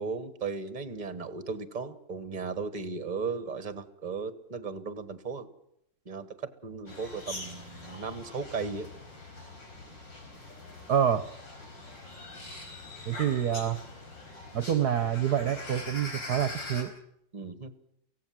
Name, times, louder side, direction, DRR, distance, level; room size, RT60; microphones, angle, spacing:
voice 1, 0.0-5.5 6.0-8.9 17.3-17.7, right 4 dB, 25° right, 12 dB, 1.5 m, -36 dB
sound 1, 6.9-16.8, left 2 dB, 85° left, 5.3 m, -43 dB
voice 2, 10.9-11.2 13.1-13.8 14.5-16.9, right 9 dB, 60° right, 12 dB, 1.5 m, -27 dB
24.0 x 17.0 x 7.5 m, 0.75 s
omnidirectional pair, 2.0 m